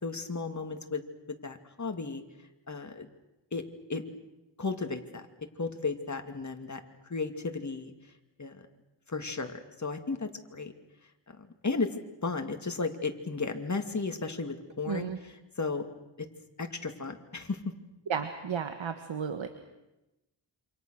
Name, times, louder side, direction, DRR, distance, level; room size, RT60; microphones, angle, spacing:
voice 1, 0.0-1.0 1.3-2.2 2.7-3.1 3.5-3.6 3.9-4.0 4.6-5.2 5.6-6.8 7.1-7.9 8.4-8.6 9.1-10.7 11.4-11.9 12.2-15.9 16.2-16.3 16.6-17.6, left 4 dB, 35° left, 5 dB, 2.5 m, -34 dB
voice 2, 14.9-15.2 18.1-19.5, right 6 dB, 75° right, 7 dB, 1.7 m, -33 dB
28.0 x 26.5 x 6.5 m, 0.97 s
wide cardioid pair, 105°, 47 cm